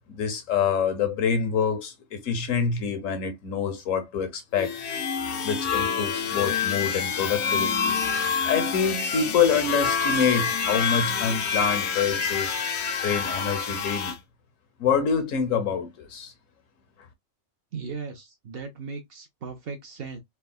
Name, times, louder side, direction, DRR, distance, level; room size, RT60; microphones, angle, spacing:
voice 1, 0.1-4.8 5.4-7.9 8.4-12.6 13.0-14.1 14.8-16.3, left 6 dB, 80° left, 1.2 m, -26 dB
sound 1, 4.6-14.2, left 6 dB, 65° left, 0.8 m, -27 dB
voice 2, 17.7-20.2, right 5 dB, 55° right, 0.7 m, -37 dB
3.4 x 2.2 x 2.2 m
omnidirectional pair, 1.3 m